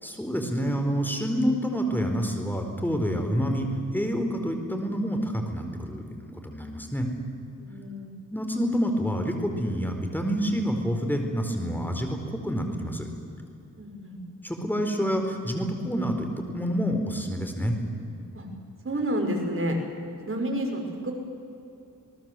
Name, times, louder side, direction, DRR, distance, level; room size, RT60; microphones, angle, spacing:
voice 1, 0.0-7.1 8.3-13.1 14.4-17.7, equal, 5° left, 4 dB, 4.3 m, -28 dB
voice 2, 7.6-8.1 13.8-14.2 18.3-18.5 18.8-19.8 20.3-21.1, right 1 dB, 40° right, 2 dB, 5.4 m, -29 dB
28.0 x 19.0 x 7.7 m, 2.7 s
cardioid pair, 80°, 32 cm